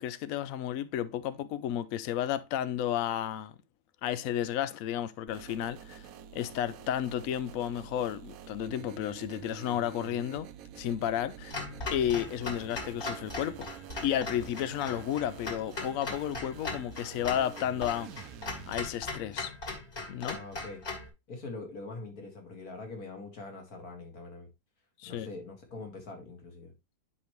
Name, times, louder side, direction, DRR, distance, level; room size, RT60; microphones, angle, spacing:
voice 1, 0.0-3.5 4.0-6.1 6.3-10.5 10.8-11.6 11.9-13.7 14.0-18.1 18.7-19.5 20.1-20.4 25.0-25.3, left 10 dB, 80° left, 0.7 m, -32 dB
sound 1, 5.3-18.9, right 10 dB, 70° right, 0.9 m, -48 dB
Clock, 11.5-21.1, left 3 dB, 35° left, 2.2 m, -39 dB
voice 2, 20.3-20.8 21.3-24.5 25.1-26.7, left 3 dB, 50° left, 2.3 m, -43 dB
9.7 x 5.1 x 3.0 m
omnidirectional pair, 2.0 m